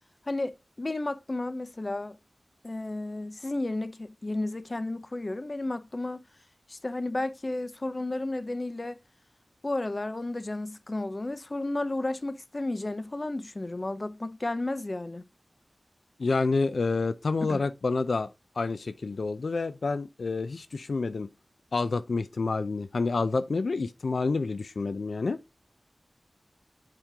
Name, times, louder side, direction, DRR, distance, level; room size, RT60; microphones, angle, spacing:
voice 1, 0.3-2.2 2.6-6.2 6.7-9.0 9.6-15.2 17.5-17.6, left 2 dB, 40° left, 0.7 m, -32 dB
voice 2, 16.2-18.3 18.6-21.3 21.7-25.4, left 3 dB, 85° left, 0.4 m, -28 dB
7.3 x 5.2 x 3.5 m
wide cardioid pair, 55°, 0 cm